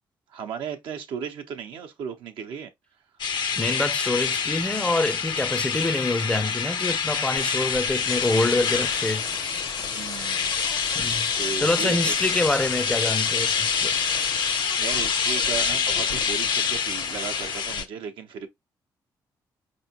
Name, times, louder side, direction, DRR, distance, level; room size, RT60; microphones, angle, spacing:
voice 1, 0.3-2.7 9.8-10.5 11.3-12.1 14.8-18.5, right 7 dB, 85° right, 0.7 m, -35 dB
sound 1, 3.2-17.8, left 6 dB, 65° left, 0.6 m, -26 dB
voice 2, 3.6-9.2 11.0-11.3 11.6-13.9, left 2 dB, 15° left, 0.4 m, -26 dB
sound 2, 7.4-17.8, left 5 dB, 80° left, 1.1 m, -34 dB
4.4 x 3.0 x 2.8 m
cardioid pair, 70°, 8 cm